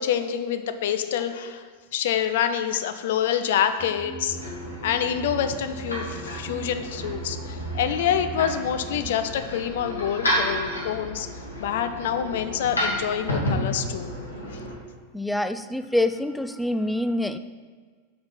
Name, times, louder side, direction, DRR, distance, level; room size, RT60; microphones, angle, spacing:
voice 1, 0.0-1.6 1.9-4.4 4.8-11.3 11.6-14.1 14.5-14.6, left 9 dB, 55° left, 9 dB, 0.5 m, -26 dB
sound 1, 3.8-9.1, right 5 dB, 20° right, 0.8 m, -38 dB
sound 2, 4.2-14.7, equal, 75° left, 1.8 m, -32 dB
voice 2, 15.1-17.4, left 1 dB, 5° left, 10 dB, 0.3 m, -26 dB
6.0 x 5.2 x 5.6 m, 1.5 s
figure-of-eight pair, 90°, 0 cm